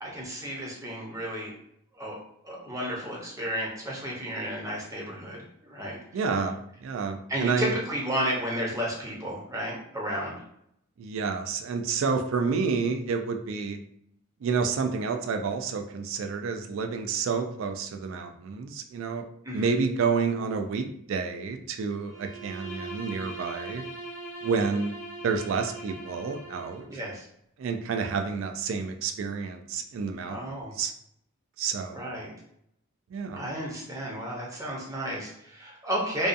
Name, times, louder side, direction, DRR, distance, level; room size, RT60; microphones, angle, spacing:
voice 1, 0.0-1.5 1.9-2.2 2.4-6.0 7.3-10.4 19.4-19.7 26.9-27.3 30.2-30.7 31.9-32.3 33.3-36.3, equal, 15° right, -3 dB, 0.6 m, -32 dB
voice 2, 6.1-7.7 11.0-13.8 14.4-19.3 19.5-23.8 24.4-24.9 25.2-26.8 27.6-30.4 30.8-30.9 31.6-32.1 33.1-33.5, right 5 dB, 65° right, 6 dB, 0.3 m, -29 dB
Bowed string instrument, 22.0-26.9, right 2 dB, 60° left, 0.6 m, -40 dB
2.6 x 2.3 x 2.5 m, 0.74 s
head